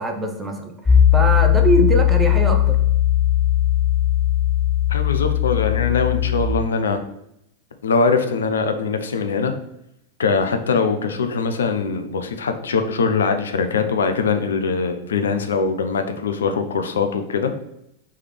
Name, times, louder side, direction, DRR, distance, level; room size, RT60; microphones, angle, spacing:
voice 1, 0.0-2.8, right 2 dB, 15° right, 3 dB, 0.8 m, -22 dB
Piano, 0.9-6.4, left 11 dB, 15° left, 1.6 m, -18 dB
voice 2, 4.9-7.0 7.8-9.5 10.2-17.5, left 5 dB, 65° left, 7 dB, 0.5 m, -22 dB
3.6 x 3.2 x 4.5 m, 0.79 s
figure-of-eight pair, 90°, 0 cm